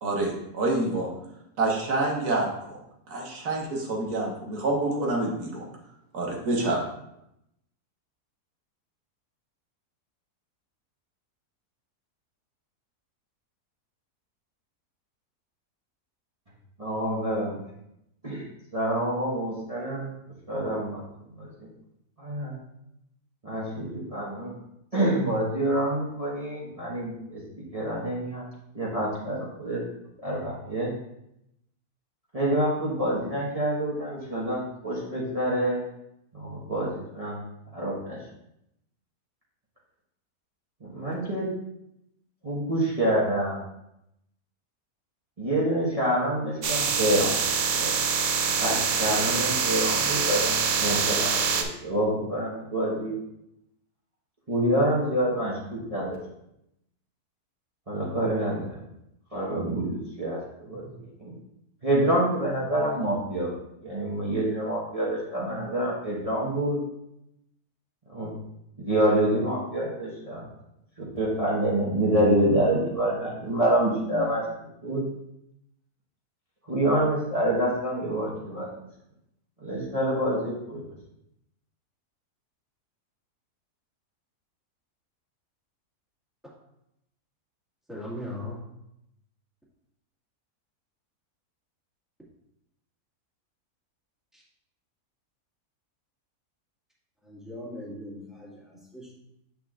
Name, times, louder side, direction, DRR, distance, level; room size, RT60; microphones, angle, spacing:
voice 1, 0.0-1.1 1.6-2.8 3.1-5.6 6.1-6.8, right 2 dB, 75° right, -1 dB, 1.9 m, -27 dB
voice 2, 16.8-17.6 18.2-18.4 18.7-20.1 20.5-21.0 21.4-21.5 22.2-22.5 23.4-24.5 24.9-27.4 27.7-28.4 28.7-29.8 30.2-30.9 32.3-35.8 36.3-37.4 37.7-38.2 40.8-41.5 42.4-43.6 45.4-47.4 47.7-47.9 48.6-53.2 54.5-56.2 57.9-58.8 59.3-60.9 61.2-61.3 61.8-63.5 63.8-66.8 68.1-68.3 68.8-70.5 71.0-74.4 74.8-75.0 76.7-78.7 79.6-80.9, right 1 dB, 25° right, -6 dB, 1.2 m, -27 dB
sound 1, 46.6-51.6, right 6 dB, 60° right, 0.9 m, -25 dB
voice 3, 87.9-88.6 94.3-94.4 97.2-99.1, left 1 dB, ahead, -5 dB, 1.7 m, -39 dB
8.2 x 6.2 x 2.5 m, 0.82 s
omnidirectional pair, 1.6 m